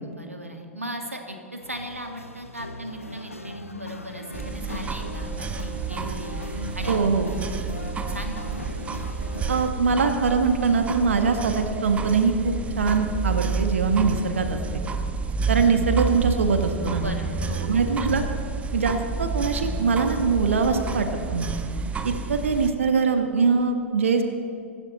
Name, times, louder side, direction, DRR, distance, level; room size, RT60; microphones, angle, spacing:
voice 1, 0.0-6.5 6.7-7.0 7.7-7.9 8.1-8.6 17.0-17.8, equal, 90° right, 4 dB, 2.1 m, -37 dB
sound 1, 1.6-9.7, left 2 dB, 85° left, 0.9 m, -38 dB
sound 2, 4.3-22.7, right 5 dB, 15° right, 1.1 m, -30 dB
voice 2, 6.9-7.3 9.5-14.8 15.5-17.1 17.6-18.2 18.7-21.5 22.0-24.2, right 5 dB, 70° right, 6 dB, 1.5 m, -23 dB
25.0 x 12.5 x 4.2 m, 2.3 s
figure-of-eight pair, 95°, 7 cm